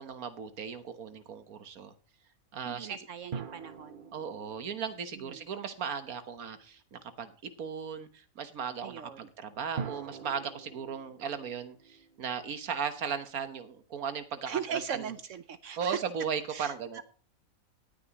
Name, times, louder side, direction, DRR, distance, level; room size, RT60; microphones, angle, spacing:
voice 1, 0.0-1.9 2.5-3.1 4.1-14.6 14.9-15.1 15.8-17.0, right 7 dB, 85° right, 10 dB, 1.6 m, -37 dB
voice 2, 2.6-4.1 5.2-5.5 8.8-9.2 14.5-16.0 16.5-17.0, right 8 dB, 65° right, 12 dB, 1.0 m, -39 dB
sound 1, 3.3-6.1 9.8-13.1, right 6 dB, 45° right, 0.9 m, -44 dB
19.0 x 9.3 x 3.0 m, 0.38 s
omnidirectional pair, 1.5 m